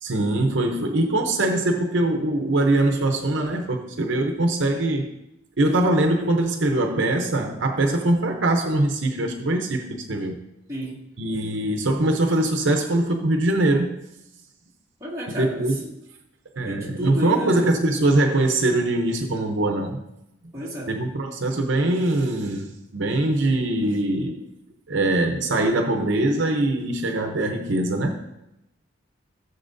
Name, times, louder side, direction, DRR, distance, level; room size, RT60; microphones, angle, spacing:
voice 1, 0.0-5.1 5.6-10.3 11.2-13.9 15.3-15.8 16.5-20.0 20.9-24.4 24.9-28.2, right 2 dB, 65° right, 3 dB, 0.8 m, -22 dB
voice 2, 10.7-11.0 15.0-15.8 16.7-17.7 20.5-20.9, equal, 15° right, -7 dB, 2.2 m, -32 dB
15.5 x 7.1 x 2.6 m, 0.89 s
head